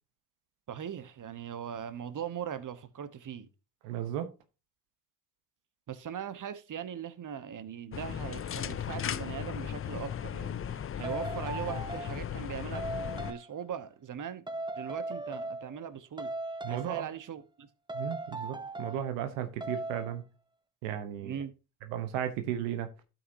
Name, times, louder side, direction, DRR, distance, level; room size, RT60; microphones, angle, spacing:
voice 1, 0.7-3.5 5.9-12.9 13.3-14.4 14.8-16.3 16.7-17.7 21.2-21.5, right 8 dB, 45° right, 1.1 m, -40 dB
voice 2, 3.8-4.3 16.6-17.1 17.9-20.2 20.8-21.4 21.9-22.9, right 10 dB, 85° right, 1.0 m, -35 dB
sound 1, 7.9-13.3, left 9 dB, 30° left, 0.5 m, -36 dB
sound 2, 10.0-10.2 11.0-12.3 12.7-13.5 14.5-15.9 16.2-17.1 17.9-19.1 19.6-20.2, right 2 dB, 10° right, 0.7 m, -38 dB
12.5 x 5.9 x 2.7 m
hypercardioid pair, 55°, 45 cm